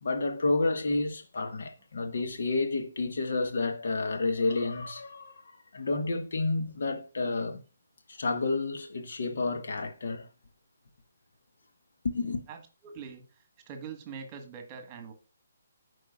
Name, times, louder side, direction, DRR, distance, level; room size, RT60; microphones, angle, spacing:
voice 1, 0.0-7.6 8.1-10.3 12.0-12.4, left 3 dB, 60° left, 1.1 m, -30 dB
voice 2, 12.5-15.1, right 6 dB, 25° right, 1.5 m, -44 dB
13.0 x 4.8 x 2.4 m
figure-of-eight pair, 140°, 0 cm